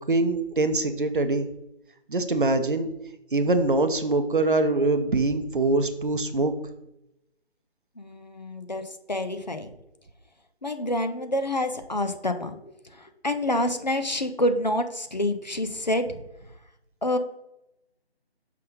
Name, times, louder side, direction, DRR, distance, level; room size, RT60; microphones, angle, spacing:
voice 1, 0.1-1.5 2.1-2.9 3.3-6.5, right 2 dB, 50° right, 9 dB, 0.7 m, -23 dB
voice 2, 8.0-8.8 9.1-9.7 10.6-12.6 13.0-16.1 17.0-17.2, left 1 dB, 40° left, 7 dB, 0.5 m, -27 dB
5.7 x 3.7 x 5.3 m, 0.87 s
figure-of-eight pair, 165°, 33 cm